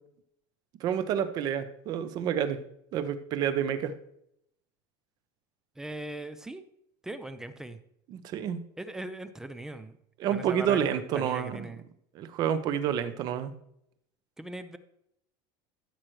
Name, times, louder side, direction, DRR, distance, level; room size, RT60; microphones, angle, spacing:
voice 1, 0.8-2.6 2.9-3.9 8.1-8.6 10.2-11.7 12.1-13.5, right 9 dB, 30° right, 11 dB, 0.7 m, -29 dB
voice 2, 5.8-6.6 7.0-7.8 8.8-10.0 10.3-11.8 14.4-14.8, right 1 dB, 5° right, 11 dB, 0.4 m, -39 dB
14.5 x 7.5 x 3.2 m, 0.76 s
cardioid pair, 180°, 12 cm